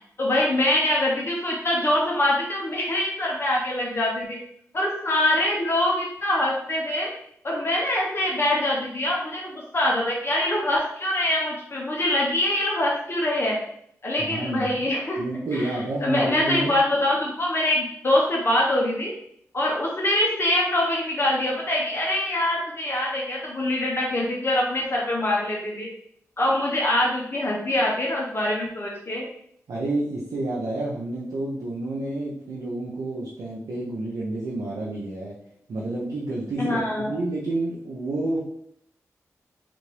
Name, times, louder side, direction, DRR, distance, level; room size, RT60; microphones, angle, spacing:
voice 1, 0.2-4.4 4.7-7.1 7.4-13.6 14.0-15.2 15.5-19.1 19.5-25.9 26.4-29.2 36.6-37.1, left 1 dB, 40° left, -3 dB, 0.8 m, -24 dB
voice 2, 14.2-14.8 15.2-16.7 29.7-35.4 35.7-38.4, right 2 dB, 80° right, -4 dB, 0.6 m, -29 dB
3.3 x 2.5 x 3.3 m, 0.70 s
cardioid pair, 45°, 6 cm